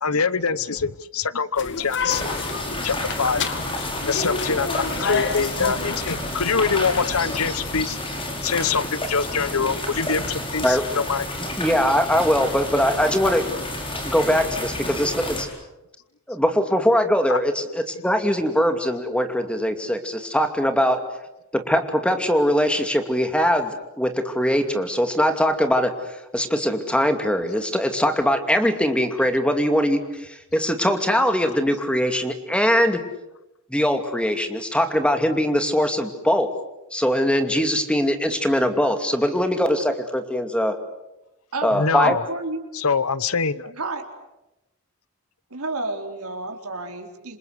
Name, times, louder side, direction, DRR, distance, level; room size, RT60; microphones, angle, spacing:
voice 1, 0.0-2.3 2.8-3.5 4.1-8.0 8.4-11.3 13.1-13.2 17.3-17.4 27.0-27.1 41.7-42.3 42.7-43.7, left 5 dB, 75° left, 18 dB, 1.0 m, -24 dB
sound 1, 1.6-7.8, left 4 dB, 55° left, 2.3 m, -30 dB
sound 2, 2.1-15.4, left 1 dB, 25° left, 5.7 m, -30 dB
voice 2, 11.6-13.4 14.0-15.5 16.3-21.0 21.5-23.7 24.0-25.9 26.3-33.0 33.7-36.5 36.9-40.8 41.6-42.2, equal, 5° left, 7 dB, 2.5 m, -21 dB
voice 3, 42.0-42.6 43.7-44.0 45.5-47.4, right 2 dB, 85° right, 4 dB, 4.1 m, -31 dB
28.0 x 26.5 x 8.1 m, 0.93 s
head